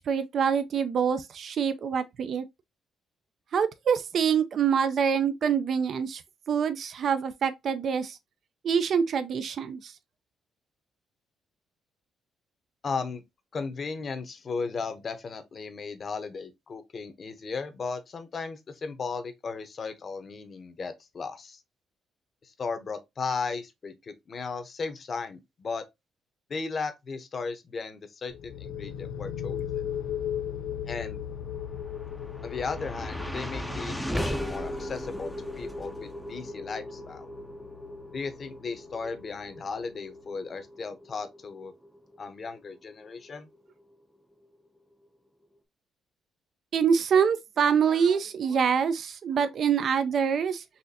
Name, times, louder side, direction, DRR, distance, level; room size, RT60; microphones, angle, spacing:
voice 1, 0.0-2.4 3.5-6.2 6.5-8.2 8.6-9.9 46.7-50.6, right 7 dB, 60° right, 0.4 m, -25 dB
voice 2, 12.8-13.2 13.5-21.6 22.4-25.8 26.5-29.8 30.9-31.2 32.4-37.3 38.1-41.7 42.2-43.5, left 4 dB, 45° left, 0.7 m, -36 dB
sound 1, 28.3-39.8, left 9 dB, 80° left, 0.3 m, -38 dB
sound 2, 31.6-43.9, equal, ahead, 0.5 m, -38 dB
4.1 x 2.6 x 2.6 m
cardioid pair, 90°, 0 cm